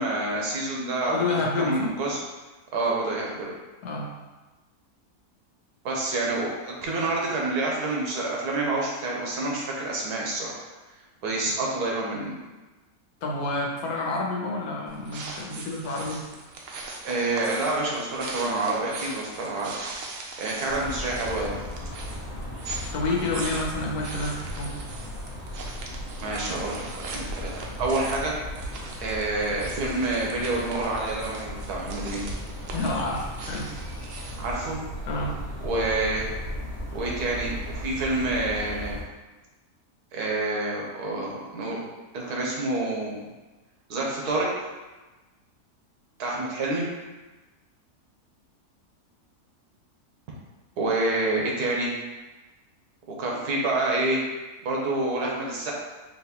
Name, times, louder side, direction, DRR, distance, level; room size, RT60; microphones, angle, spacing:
voice 1, 0.0-2.2 2.7-3.5 5.8-10.6 11.2-12.4 17.0-20.0 20.4-21.6 26.2-26.8 27.1-28.4 29.0-32.2 34.4-34.8 35.6-36.2 36.9-38.9 40.1-41.8 42.1-43.2 43.9-44.5 46.2-46.9 50.8-52.0 53.2-54.2 54.6-55.7, right 2 dB, 90° right, -2 dB, 1.4 m, -28 dB
voice 2, 1.1-1.9 3.8-4.1 13.2-16.2 22.9-24.7 32.7-33.7 35.1-35.4, left 2 dB, 80° left, -2 dB, 1.3 m, -29 dB
sound 1, 14.9-34.6, right 3 dB, 65° right, 0.9 m, -40 dB
sound 2, 20.7-39.0, equal, 15° left, 0.7 m, -36 dB
4.4 x 3.0 x 2.9 m, 1.2 s
omnidirectional pair, 1.6 m